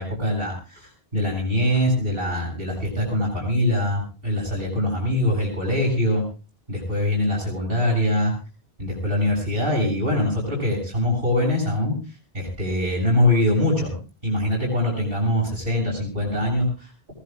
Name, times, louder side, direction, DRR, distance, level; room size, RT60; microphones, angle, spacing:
voice 1, 0.0-6.2 6.7-8.3 8.8-11.9 12.3-14.0 14.2-17.1, left 1 dB, 65° right, 0 dB, 8.3 m, -23 dB
21.5 x 20.5 x 2.5 m, 0.34 s
omnidirectional pair, 1.0 m